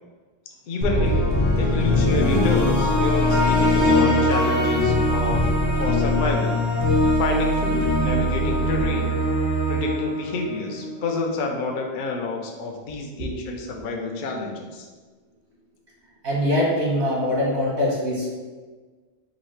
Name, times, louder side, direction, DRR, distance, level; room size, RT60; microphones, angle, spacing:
voice 1, 0.7-1.2 1.6-5.4 5.8-6.6 7.2-9.1 9.7-14.9, left 3 dB, 55° left, 2 dB, 0.7 m, -29 dB
sound 1, 0.8-11.0, left 1 dB, 85° left, 1.3 m, -21 dB
voice 2, 16.2-18.3, left 1 dB, 85° right, -5 dB, 1.7 m, -23 dB
4.0 x 2.8 x 4.4 m, 1.4 s
omnidirectional pair, 1.1 m